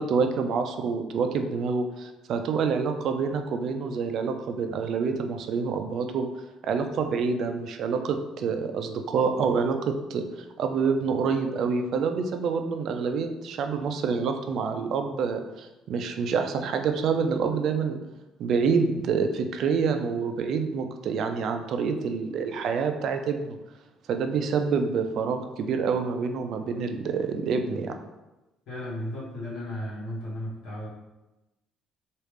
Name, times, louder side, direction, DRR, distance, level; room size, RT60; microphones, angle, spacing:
voice 1, 0.0-6.3 6.6-10.2 10.6-18.0 18.4-23.6 24.1-28.0, right 5 dB, 50° right, 6 dB, 0.3 m, -27 dB
voice 2, 28.7-30.9, left 1 dB, 65° left, -6 dB, 1.3 m, -34 dB
3.1 x 2.4 x 3.3 m, 1.0 s
cardioid pair, 160°, 0 cm